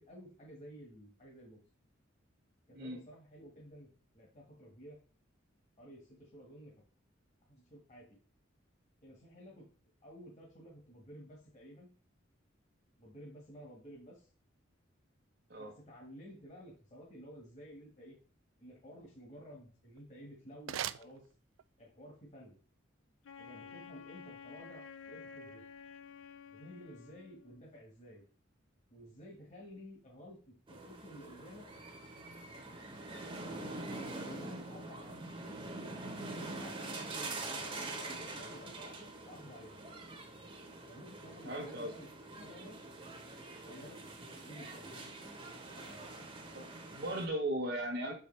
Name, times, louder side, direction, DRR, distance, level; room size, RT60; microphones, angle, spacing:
voice 1, 0.0-1.6 2.7-5.0 5.8-6.7 7.5-8.1 9.0-9.7 10.0-11.9 13.0-14.3 15.6-18.2 18.6-21.2 21.8-22.6 23.4-25.6 26.5-28.2 28.9-31.6 33.1-33.7 33.9-35.4 36.2-39.8 40.9-42.1 42.3-42.8 43.6-44.0 44.3-44.9 45.7-46.0, equal, 35° left, -3 dB, 1.5 m, -53 dB
sound 1, 19.8-21.9, right 11 dB, 80° right, 0.3 m, -43 dB
Wind instrument woodwind instrument, 23.2-27.6, left 6 dB, 75° left, 0.5 m, -51 dB
Amusement park attraction ride, 30.7-47.3, right 2 dB, 25° right, 1.0 m, -45 dB
voice 2, 41.4-41.9 46.5-48.1, right 1 dB, 55° right, -1 dB, 1.3 m, -37 dB
6.5 x 4.9 x 3.2 m, 0.39 s
head